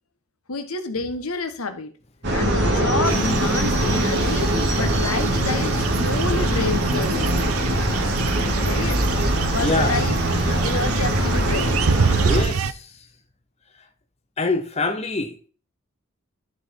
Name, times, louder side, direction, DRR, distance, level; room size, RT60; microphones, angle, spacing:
voice 1, 0.5-1.9 2.3-7.6 8.6-9.0 9.5-10.1 10.4-11.8, left 3 dB, 80° left, 1.3 m, -29 dB
sound 1, 2.2-12.4, right 1 dB, 50° right, 2.5 m, -22 dB
sound 2, 3.0-12.7, right 6 dB, 80° right, 0.6 m, -28 dB
voice 2, 9.6-10.0 12.2-13.0 14.4-15.5, left 3 dB, 30° left, 0.7 m, -25 dB
12.0 x 4.8 x 4.5 m
head